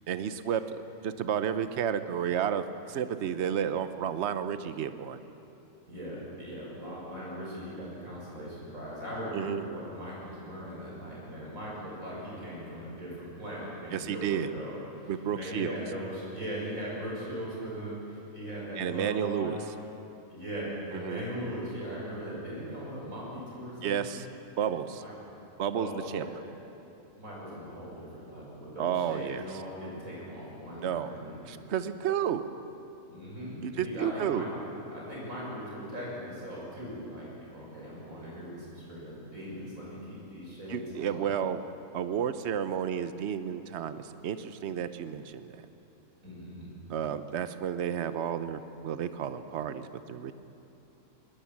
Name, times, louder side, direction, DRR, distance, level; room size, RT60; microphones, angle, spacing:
voice 1, 0.1-5.2 9.3-9.6 13.9-14.5 15.1-15.7 18.8-19.6 20.9-21.2 23.8-24.3 24.6-25.0 25.6-26.3 28.8-29.4 30.8-31.1 31.4-32.4 33.6-34.4 40.7-41.6 41.9-45.7 46.9-50.3, right 8 dB, 60° right, 11 dB, 1.0 m, -31 dB
voice 2, 5.9-19.5 20.3-24.2 25.0-25.1 25.7-26.4 27.2-31.6 33.1-34.7 34.9-41.2 46.2-46.7, equal, 80° right, -5 dB, 7.1 m, -39 dB
20.5 x 20.5 x 7.3 m, 2.8 s
omnidirectional pair, 1.4 m